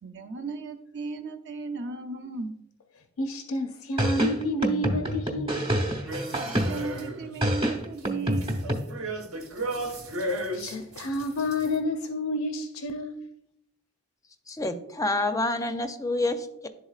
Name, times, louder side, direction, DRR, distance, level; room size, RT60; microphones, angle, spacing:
voice 1, 0.0-2.5 6.0-8.6, right 3 dB, 60° right, 0.7 m, -35 dB
voice 2, 3.2-5.6 10.5-13.2, left 1 dB, 80° left, 0.5 m, -30 dB
sound 1, 4.0-7.0 7.4-8.8, equal, 25° right, 1.0 m, -27 dB
sound 2, 6.1-7.4 7.8-11.8, right 1 dB, 85° right, 1.1 m, -35 dB
voice 3, 14.5-16.7, left 2 dB, 15° left, 0.4 m, -28 dB
11.5 x 3.9 x 2.4 m
head